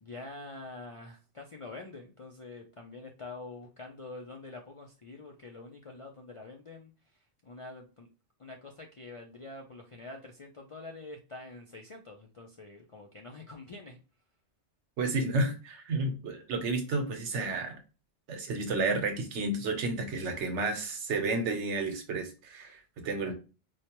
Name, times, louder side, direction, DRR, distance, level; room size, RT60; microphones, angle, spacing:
voice 1, 0.0-6.9 7.4-8.1 8.4-14.0 23.2-23.3, left 2 dB, 55° left, 1 dB, 0.3 m, -46 dB
voice 2, 15.0-17.8 18.3-23.3, right 3 dB, 85° right, 6 dB, 1.1 m, -31 dB
4.6 x 2.1 x 2.9 m, 0.33 s
omnidirectional pair, 1.2 m